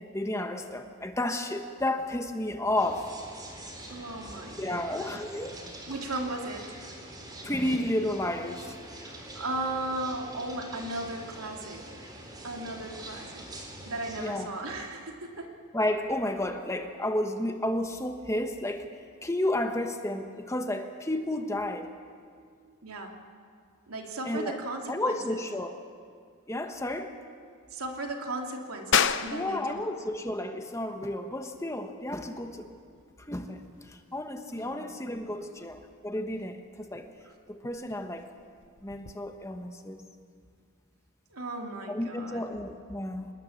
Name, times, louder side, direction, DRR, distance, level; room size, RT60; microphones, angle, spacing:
voice 1, 0.0-3.1 4.6-5.5 7.4-8.7 14.2-14.5 15.7-18.9 19.2-21.9 24.3-24.6 24.9-25.8 26.5-27.1 29.3-32.7 33.3-33.6 33.9-37.1 37.5-38.2 38.8-40.0 41.9-43.3, left 1 dB, 15° left, 6 dB, 1.2 m, -32 dB
sound 1, 2.7-14.3, right 1 dB, 20° right, 3.9 m, -45 dB
voice 2, 3.9-5.1 5.9-6.7 9.0-11.8 12.4-15.5 22.8-23.2 23.9-25.4 27.7-29.9 34.6-35.0 35.4-35.7 37.2-37.3 41.3-42.4, right 2 dB, 85° right, 2 dB, 2.9 m, -36 dB
sound 2, 28.9-39.2, left 8 dB, 55° left, 0.7 m, -35 dB
26.5 x 20.5 x 7.3 m, 2.2 s
head